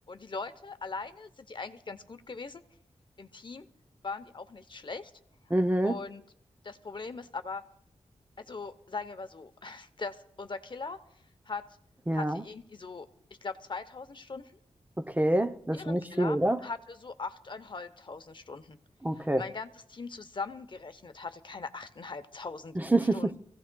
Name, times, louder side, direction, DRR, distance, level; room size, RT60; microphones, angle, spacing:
voice 1, 0.1-2.6 3.2-3.7 4.0-5.1 5.5-5.6 5.8-6.2 6.6-7.6 8.4-11.0 11.5-11.7 12.1-13.1 13.4-14.5 15.7-16.4 16.6-18.8 19.2-22.8 23.1-23.3, left 4 dB, 45° left, 0.8 m, -40 dB
voice 2, 5.5-6.0 12.1-12.4 15.0-16.6 19.0-19.4 22.8-23.4, right 1 dB, 15° right, 0.6 m, -27 dB
25.0 x 16.0 x 2.3 m
wide cardioid pair, 80°, 12 cm